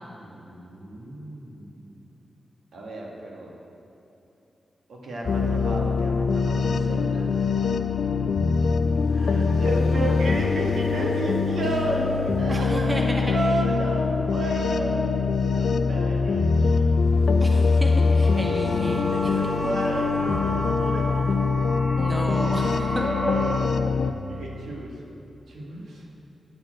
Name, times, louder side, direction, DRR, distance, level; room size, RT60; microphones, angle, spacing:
voice 1, 0.0-2.0 2.7-3.5 4.9-7.3 9.1-17.0 17.9-18.0 19.1-21.3 23.0-23.7 24.3-24.9 25.5-26.1, right 2 dB, 80° right, -2 dB, 1.9 m, -32 dB
sound 1, 5.3-24.1, left 4 dB, 60° left, 0.4 m, -23 dB
voice 2, 12.5-13.2 17.4-19.1 22.0-23.0, equal, 15° right, 0 dB, 1.0 m, -31 dB
sound 2, 18.2-23.5, equal, 10° left, 1.9 m, -33 dB
10.5 x 6.6 x 7.8 m, 2.9 s
wide cardioid pair, 155°, 0 cm